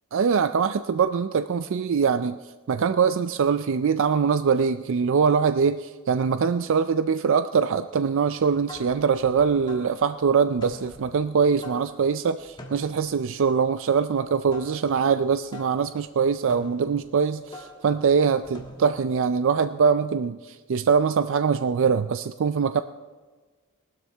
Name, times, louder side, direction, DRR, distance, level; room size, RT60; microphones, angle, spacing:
voice 1, 0.1-2.4 2.7-22.8, right 6 dB, 65° right, 11 dB, 0.4 m, -23 dB
sound 1, 8.6-19.2, left 1 dB, 20° left, 1.8 m, -46 dB
19.0 x 12.5 x 3.4 m, 1.3 s
head